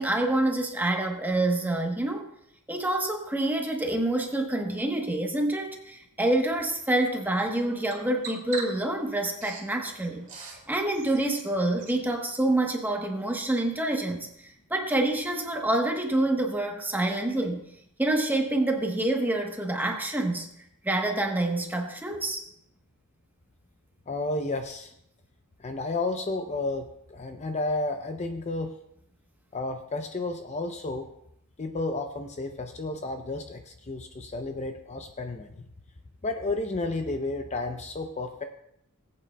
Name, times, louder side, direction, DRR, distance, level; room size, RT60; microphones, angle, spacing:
voice 1, 0.0-2.3 2.7-14.3 14.7-17.6 18.0-20.5 20.8-22.4, right 1 dB, 10° right, 3 dB, 1.0 m, -27 dB
Bird vocalization bird call bird song, 6.4-12.0, right 4 dB, 35° right, 2.3 m, -44 dB
voice 2, 24.1-24.9 25.6-28.7 29.5-31.1 31.6-35.6 36.2-38.4, left 2 dB, 30° left, 5 dB, 0.6 m, -32 dB
18.5 x 8.5 x 2.3 m, 0.76 s
head